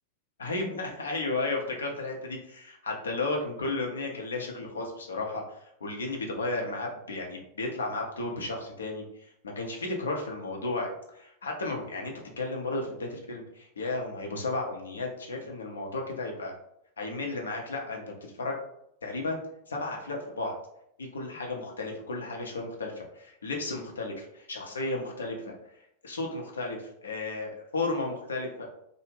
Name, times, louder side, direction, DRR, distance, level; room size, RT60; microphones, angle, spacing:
voice 1, 0.4-16.5 17.0-18.0 18.4-18.5 19.0-19.4 19.7-20.5 21.0-25.5 26.0-28.6, left 2 dB, 70° left, 0 dB, 0.5 m, -33 dB
2.3 x 2.0 x 3.2 m, 0.77 s
figure-of-eight pair, 90°, 0 cm